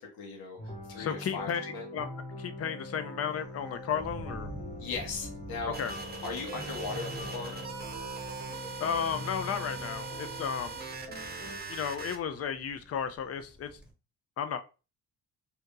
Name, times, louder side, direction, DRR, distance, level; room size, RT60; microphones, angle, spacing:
voice 1, 0.2-0.6 0.9-1.8 4.8-6.0 6.2-7.6, left 4 dB, 80° left, 1.2 m, -38 dB
sound 1, 0.6-11.6, left 1 dB, 20° left, 1.3 m, -43 dB
voice 2, 1.0-2.1 2.4-4.5 5.8-5.9 8.8-10.8 11.7-13.7 14.4-14.6, left 8 dB, 40° left, 0.6 m, -33 dB
Thunder, 3.3-13.9, right 2 dB, ahead, 1.1 m, -49 dB
sound 2, 5.7-12.2, right 4 dB, 25° right, 0.7 m, -41 dB
2.8 x 2.7 x 3.6 m
cardioid pair, 100°, 36 cm